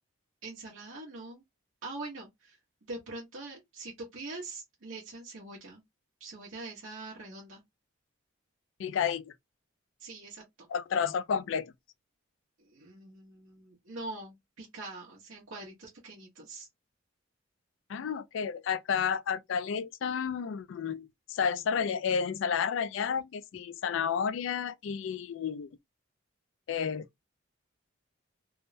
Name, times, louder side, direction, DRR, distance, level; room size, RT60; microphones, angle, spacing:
voice 1, 0.4-1.4 1.8-2.6 2.9-5.8 6.2-7.6 10.0-10.4 12.7-16.7, right 2 dB, 85° right, 1.1 m, -43 dB
voice 2, 8.8-9.3 10.7-11.7 17.9-25.7 26.7-27.1, left 7 dB, 70° left, 0.3 m, -31 dB
3.5 x 2.1 x 2.6 m
head